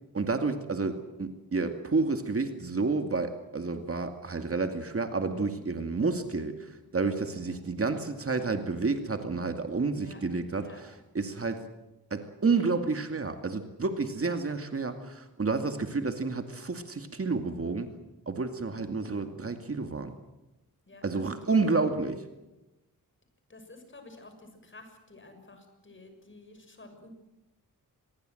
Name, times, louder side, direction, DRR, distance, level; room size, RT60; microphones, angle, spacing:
voice 1, 0.1-11.6 12.1-17.9 18.3-20.1 21.0-22.2, right 4 dB, 40° right, 7 dB, 2.3 m, -30 dB
voice 2, 20.9-21.6 23.5-27.1, left 2 dB, 35° left, 6 dB, 6.3 m, -51 dB
25.5 x 22.0 x 7.9 m, 1.0 s
wide cardioid pair, 95°, 35 cm